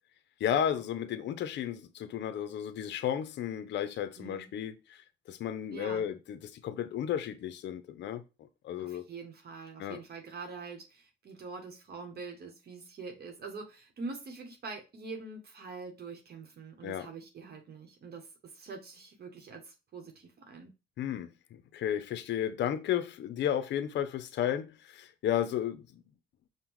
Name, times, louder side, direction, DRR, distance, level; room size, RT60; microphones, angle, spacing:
voice 1, 0.4-5.0 5.3-8.2 8.6-9.0 9.8-10.0 16.8-17.1 21.0-26.0, left 10 dB, 65° left, 0.5 m, -33 dB
voice 2, 4.2-4.5 5.7-6.1 8.8-20.7, right 4 dB, 50° right, 0.9 m, -44 dB
5.2 x 2.1 x 3.0 m
cardioid pair, 90°, 20 cm